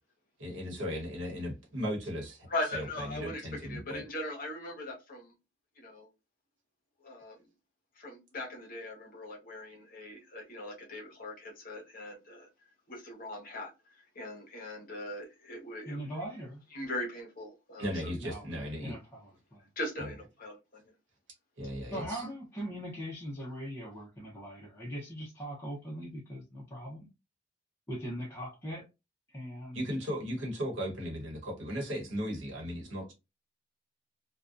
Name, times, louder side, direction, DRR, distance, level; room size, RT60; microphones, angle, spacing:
voice 1, 0.4-4.0 17.8-18.9 20.0-20.1 21.6-22.2 29.7-33.1, equal, 80° right, 1.0 m, -36 dB
voice 2, 2.5-5.3 5.8-6.1 7.0-7.4 8.0-12.5 12.9-13.7 14.1-16.0 16.7-18.1 19.8-20.8, left 1 dB, 45° left, 0.9 m, -40 dB
voice 3, 15.9-16.6 18.2-19.7 21.9-27.1 27.9-28.8 29.3-29.8, equal, 15° left, 0.6 m, -40 dB
2.6 x 2.2 x 2.3 m
head